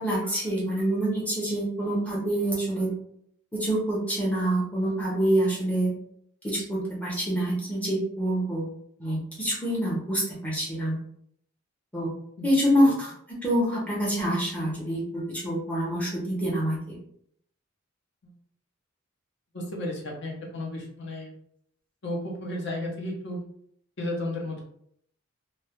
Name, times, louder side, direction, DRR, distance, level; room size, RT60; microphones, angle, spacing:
voice 1, 0.0-2.9 3.5-5.9 6.4-8.7 9.0-10.9 11.9-12.1 12.4-13.1 13.4-17.0, right 1 dB, 5° left, -5 dB, 0.6 m, -26 dB
voice 2, 19.5-21.3 22.0-23.4 24.0-24.6, left 1 dB, 55° left, -1 dB, 0.7 m, -33 dB
2.3 x 2.0 x 2.9 m, 0.67 s
head